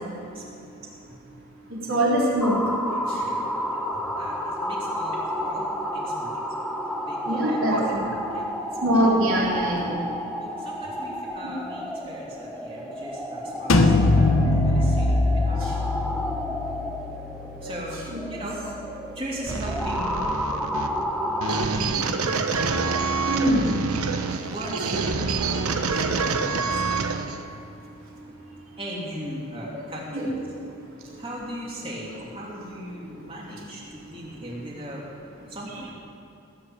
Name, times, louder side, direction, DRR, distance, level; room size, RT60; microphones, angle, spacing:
voice 1, 1.9-2.6 2.9-3.0 7.2-8.0 8.8-9.9 17.6-17.7 18.1-18.2 23.3-23.8 30.1-30.3, right 1 dB, 65° right, -4 dB, 3.8 m, -22 dB
sound 1, 2.4-21.7, equal, ahead, 0.8 m, -31 dB
voice 2, 3.9-6.3 7.0-8.6 10.4-15.9 17.6-18.0 18.3-18.6 19.1-20.3 21.5-22.3 24.4-27.1 28.8-30.3 31.2-35.0 35.5-35.9, equal, 25° right, -4 dB, 3.0 m, -38 dB
sound 2, 13.7-19.3, left 2 dB, 70° left, 1.0 m, -23 dB
sound 3, 19.5-27.4, right 4 dB, 85° right, 1.0 m, -27 dB
19.5 x 7.2 x 9.2 m, 2.8 s
head